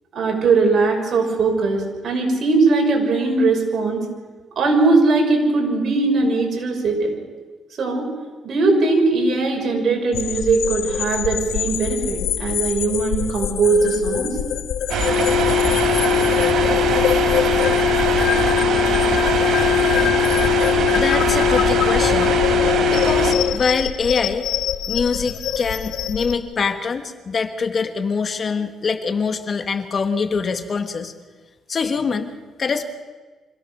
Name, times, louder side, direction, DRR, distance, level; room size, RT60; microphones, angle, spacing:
voice 1, 0.1-4.0 4.6-7.1 7.8-8.1 8.4-14.3, right 3 dB, 55° right, 1 dB, 6.2 m, -19 dB
sound 1, 10.1-26.4, left 10 dB, 85° left, 1.1 m, -26 dB
sound 2, 14.9-23.3, left 2 dB, 75° right, 4.4 m, -18 dB
voice 2, 20.9-22.4 22.9-24.5 24.9-31.1 31.7-32.3 32.6-32.8, left 5 dB, 45° left, 8 dB, 1.7 m, -24 dB
25.5 x 16.5 x 6.6 m, 1.3 s
cardioid pair, 90°, 0 cm